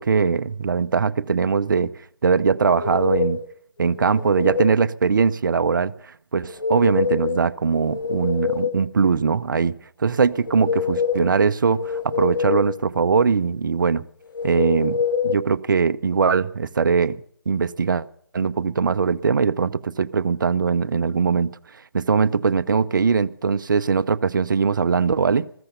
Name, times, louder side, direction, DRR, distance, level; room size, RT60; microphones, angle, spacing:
voice 1, 0.0-1.9 2.2-3.4 3.8-5.9 6.3-14.0 14.4-15.0 15.2-17.2 17.5-18.1 18.3-21.6 21.9-25.5, right 5 dB, 60° right, 15 dB, 0.8 m, -21 dB
sound 1, 2.6-3.5 4.0-4.8 6.4-7.4 7.8-8.9 10.3-11.3 11.8-12.8 14.3-15.4, left 6 dB, 60° left, 1.9 m, -25 dB
15.0 x 14.0 x 6.8 m, 0.63 s
figure-of-eight pair, 150°, 12 cm